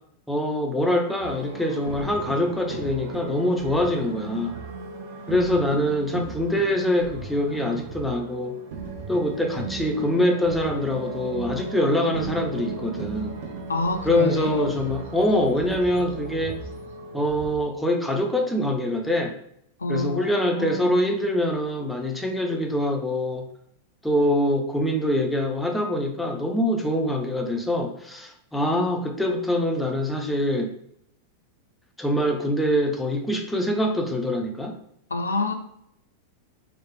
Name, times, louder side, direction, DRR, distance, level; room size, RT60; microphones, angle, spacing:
voice 1, 0.3-4.6 5.3-8.6 9.1-13.3 14.0-16.6 17.1-19.3 19.9-23.5 24.0-30.7 32.0-34.8, left 1 dB, 5° left, 2 dB, 0.4 m, -24 dB
sound 1, 1.2-17.6, right 3 dB, 55° right, 0.7 m, -36 dB
voice 2, 5.3-5.6 6.2-6.3 13.7-14.7 19.8-20.9 35.1-35.5, left 2 dB, 75° left, 7 dB, 0.3 m, -28 dB
3.0 x 2.1 x 3.0 m, 0.71 s
figure-of-eight pair, 90°, 0 cm